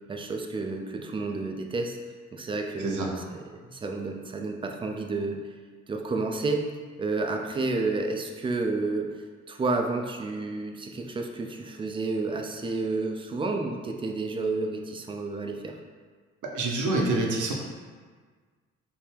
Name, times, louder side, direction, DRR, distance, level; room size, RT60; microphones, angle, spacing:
voice 1, 0.1-2.0 2.3-3.4 3.7-5.4 5.9-6.7 7.0-9.1 9.5-15.8, right 3 dB, 15° right, 3 dB, 0.3 m, -30 dB
voice 2, 16.5-17.5, right 2 dB, 55° right, -1 dB, 0.7 m, -26 dB
3.4 x 2.1 x 3.4 m, 1.6 s
hypercardioid pair, 45°, 38 cm